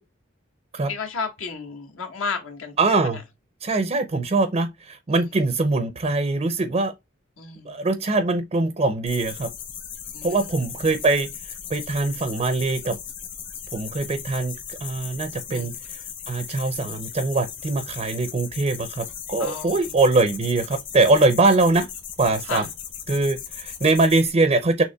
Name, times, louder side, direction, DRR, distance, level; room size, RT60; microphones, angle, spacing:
voice 1, 0.9-2.7 3.1-3.2 5.1-5.2 7.4-7.8 10.1-10.5 15.5-15.7 19.4-19.9 22.4-22.7, left 5 dB, 80° left, 1.3 m, -33 dB
voice 2, 2.8-3.2 3.6-6.9 7.7-9.5 10.2-11.3 11.7-13.0 13.7-16.0 16.3-21.9 22.2-22.6 23.1-24.8, right 3 dB, 30° right, 0.4 m, -22 dB
sound 1, 9.1-24.3, left 8 dB, 60° left, 1.0 m, -37 dB
6.4 x 3.0 x 2.2 m
head